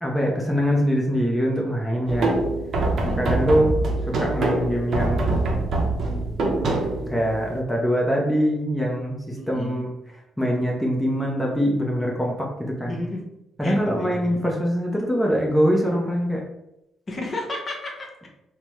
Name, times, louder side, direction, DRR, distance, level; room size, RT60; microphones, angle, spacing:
voice 1, 0.0-2.3 3.2-3.8 4.1-5.4 7.1-9.9 10.4-12.9 13.6-16.4, equal, 5° left, -3 dB, 0.6 m, -23 dB
sound 1, 2.1-7.6, right 2 dB, 60° right, 0.6 m, -24 dB
voice 2, 3.0-3.5 9.4-9.9 12.9-13.2 13.6-14.4 17.1-18.3, left 2 dB, 35° left, 0 dB, 0.7 m, -33 dB
3.3 x 2.1 x 2.9 m, 0.88 s
cardioid pair, 90°, 0 cm